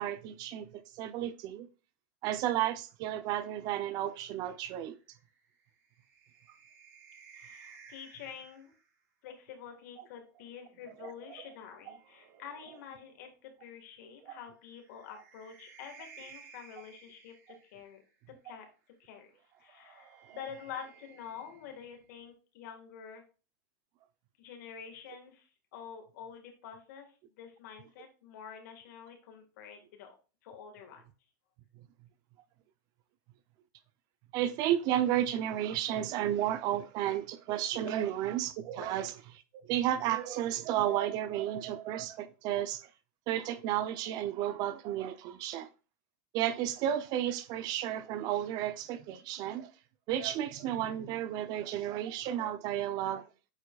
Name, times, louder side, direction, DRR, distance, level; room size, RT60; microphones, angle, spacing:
voice 1, 0.0-1.7 2.2-5.0 11.0-11.1 14.3-14.4 31.8-31.9 34.3-39.1 39.6-42.9 43.3-45.7 46.3-49.7 50.1-53.3, right 11 dB, 40° right, 0.6 m, -32 dB
sound 1, 3.4-8.9 10.3-13.3 14.6-18.1 19.4-22.3, right 6 dB, 60° right, 2.7 m, -58 dB
voice 2, 7.4-8.7 9.2-18.0 18.4-18.7 19.0-19.3 19.6-23.2 24.4-30.2 30.4-31.0 38.8-38.9, left 7 dB, 65° left, 1.8 m, -48 dB
8.7 x 4.6 x 2.4 m
supercardioid pair, 140°, 10 cm